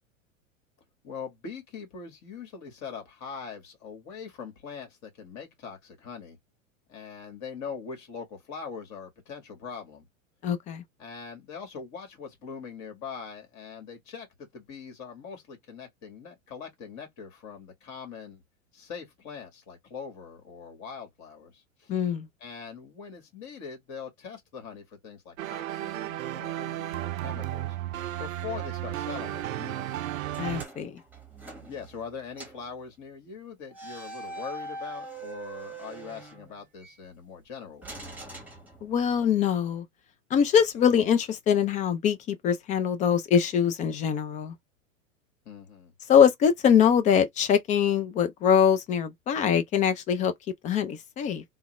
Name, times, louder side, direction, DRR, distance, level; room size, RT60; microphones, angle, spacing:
voice 1, 1.0-6.4 6.9-10.0 11.0-18.4 18.7-22.0 22.4-27.8 28.2-29.9 31.6-38.0 45.5-45.9, left 6 dB, 45° left, 1.9 m, -42 dB
voice 2, 10.4-10.8 21.9-22.3 30.4-31.0 38.8-39.8 40.3-44.5 46.1-50.3 50.6-51.4, left 8 dB, 20° left, 0.3 m, -23 dB
sound 1, 25.4-30.6, right 14 dB, 75° right, 0.6 m, -33 dB
sound 2, 30.3-32.1 32.4-32.7 33.7-36.9 37.8-39.2, right 2 dB, 5° right, 1.1 m, -42 dB
3.3 x 2.1 x 3.1 m
hypercardioid pair, 100°, 40 cm